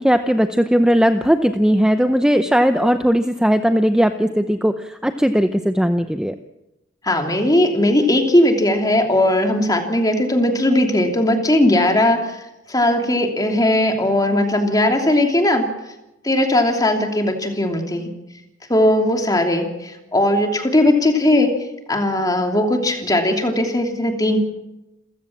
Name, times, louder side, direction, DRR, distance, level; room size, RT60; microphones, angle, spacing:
voice 1, 0.0-6.3, equal, 5° right, 8 dB, 0.7 m, -18 dB
voice 2, 7.0-12.3 12.7-15.7 16.2-18.1 18.7-21.5 21.9-24.4, left 1 dB, 20° left, 4 dB, 2.9 m, -18 dB
28.5 x 15.5 x 7.4 m, 0.97 s
head